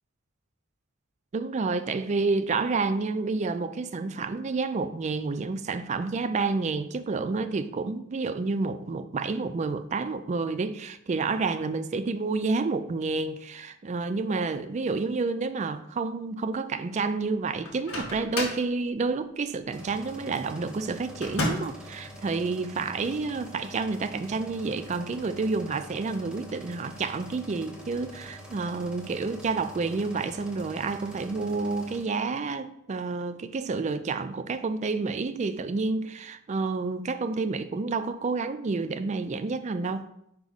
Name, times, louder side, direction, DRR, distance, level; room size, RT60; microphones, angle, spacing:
voice 1, 1.3-40.1, right 4 dB, 35° right, 0.3 m, -29 dB
Microwave oven, 17.6-18.7 21.2-21.8, left 1 dB, 80° left, 1.5 m, -31 dB
sound 1, 19.7-32.0, equal, 5° right, 0.8 m, -45 dB
5.0 x 4.8 x 4.0 m
head